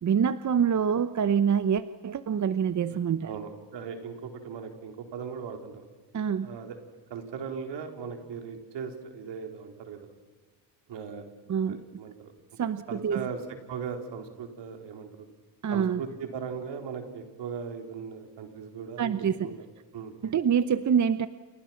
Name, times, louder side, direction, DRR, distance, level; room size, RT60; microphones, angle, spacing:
voice 1, 0.0-3.3 6.1-6.5 11.5-11.8 12.6-13.3 15.6-16.0 19.0-19.4 20.2-21.3, right 7 dB, 40° right, 13 dB, 0.9 m, -26 dB
voice 2, 2.9-5.8 6.4-6.8 7.1-10.1 10.9-11.2 11.7-12.3 12.9-13.4 13.7-15.1 15.7-19.2 19.4-19.5 19.9-20.1, right 6 dB, 75° right, 5 dB, 4.2 m, -38 dB
29.0 x 28.5 x 5.9 m, 1.4 s
cardioid pair, 95°, 43 cm